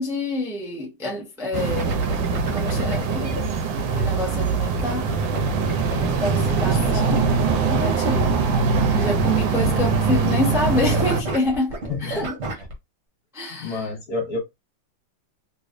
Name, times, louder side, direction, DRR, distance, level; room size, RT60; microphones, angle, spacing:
voice 1, 0.0-2.0 2.5-3.4 3.9-5.1 6.0-7.2 7.6-8.4 8.9-12.3 13.3-13.8, left 2 dB, 5° right, 0.4 m, -27 dB
sound 1, 1.5-11.2, right 4 dB, 75° right, 1.3 m, -22 dB
sound 2, 1.8-3.4 4.6-9.7 9.9-10.3 10.5-12.7, right 3 dB, 40° right, 1.1 m, -34 dB
voice 2, 6.6-7.2 9.7-10.0 11.9-12.2 13.5-14.4, left 3 dB, 55° left, 1.3 m, -31 dB
3.2 x 3.2 x 2.4 m
omnidirectional pair, 2.3 m